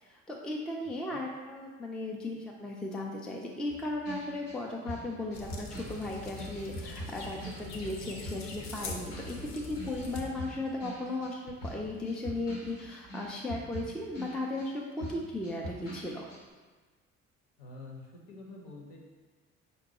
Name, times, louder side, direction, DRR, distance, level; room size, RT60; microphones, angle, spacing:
voice 1, 0.0-16.2, left 2 dB, ahead, -1 dB, 0.4 m, -36 dB
sound 1, 3.7-8.0 8.2-14.7 15.0-16.4, equal, 80° left, 1.1 m, -43 dB
sound 2, 5.3-10.3, left 3 dB, 45° left, 0.6 m, -43 dB
sound 3, 5.7-11.2 11.5-11.9 12.3-13.7, right 8 dB, 45° right, 0.6 m, -53 dB
voice 2, 17.6-19.0, left 2 dB, 60° left, -2 dB, 1.0 m, -47 dB
5.2 x 2.2 x 2.9 m, 1.4 s
figure-of-eight pair, 50°, 39 cm